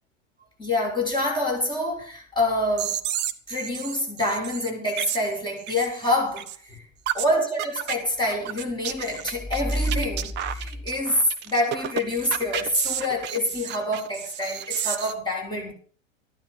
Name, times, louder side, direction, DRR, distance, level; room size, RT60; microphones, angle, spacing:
voice 1, 0.6-3.0 3.5-6.9 7.1-15.7, left 1 dB, 10° left, -1 dB, 7.1 m, -26 dB
sound 1, 2.8-6.1 6.4-6.6 7.1-7.3 7.6-7.9 8.3-15.1, right 11 dB, 30° right, 1.1 m, -32 dB
13.5 x 11.5 x 6.7 m, 0.43 s
figure-of-eight pair, 95°, 38 cm